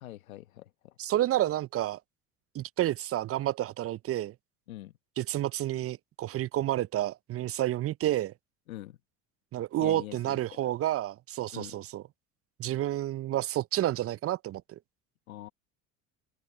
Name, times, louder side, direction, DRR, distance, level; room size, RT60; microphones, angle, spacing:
voice 1, 0.0-0.9 4.7-4.9 8.7-9.0 9.8-10.6 11.5-11.7 15.3-15.5, left 14 dB, 90° left, 1.3 m, -44 dB
voice 2, 1.0-2.0 2.5-4.3 5.2-8.3 9.5-12.0 12.6-14.8, right 13 dB, 35° right, 0.5 m, -30 dB
hypercardioid pair, 70°, 40 cm